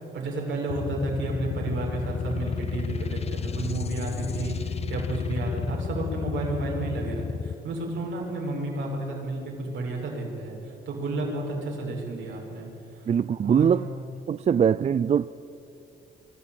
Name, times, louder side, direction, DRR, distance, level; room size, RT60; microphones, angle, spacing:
voice 1, 0.1-10.6 10.9-12.7 13.4-13.7, right 2 dB, 70° right, 6.3 m, -31 dB
sound 1, 0.7-7.5, left 6 dB, 30° left, 0.5 m, -32 dB
voice 2, 13.1-13.9 14.3-15.3, right 8 dB, 35° right, 0.4 m, -22 dB
24.5 x 12.5 x 9.0 m
cardioid pair, 90°, 20 cm